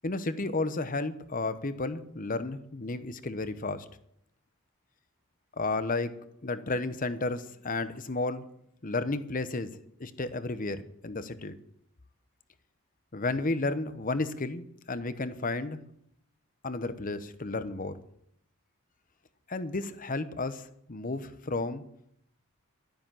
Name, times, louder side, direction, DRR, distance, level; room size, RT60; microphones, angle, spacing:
voice 1, 0.0-3.8 5.6-6.1 6.4-8.4 8.8-9.7 10.0-11.5 13.1-15.8 16.6-18.0 19.5-21.8, left 3 dB, 40° left, 13 dB, 1.0 m, -32 dB
13.0 x 10.5 x 7.6 m, 0.73 s
head